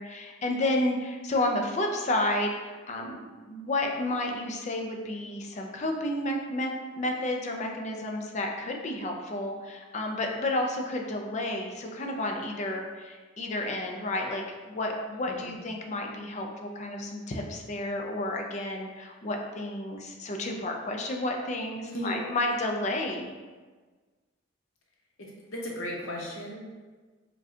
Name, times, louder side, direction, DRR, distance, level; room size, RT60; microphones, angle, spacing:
voice 1, 0.0-23.3, left 1 dB, 35° left, 2 dB, 0.4 m, -31 dB
voice 2, 21.9-22.3 25.2-26.7, equal, 75° left, -2 dB, 0.8 m, -36 dB
4.8 x 2.2 x 2.7 m, 1.4 s
head